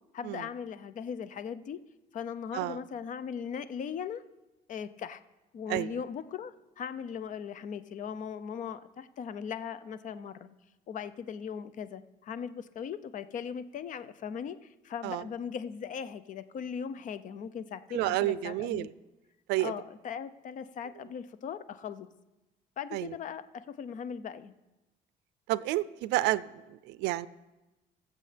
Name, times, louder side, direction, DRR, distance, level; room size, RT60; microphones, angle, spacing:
voice 1, 0.1-1.8 2.1-4.2 4.7-5.2 5.5-10.5 10.9-18.9 19.6-22.1 22.8-24.5, left 7 dB, 50° left, 14 dB, 0.6 m, -39 dB
voice 2, 17.9-18.9 19.5-19.7 22.9-23.1 25.5-26.5 26.9-27.3, right 16 dB, 90° right, 17 dB, 0.4 m, -29 dB
22.0 x 7.5 x 3.4 m, 1.0 s
cardioid pair, 110°, 17 cm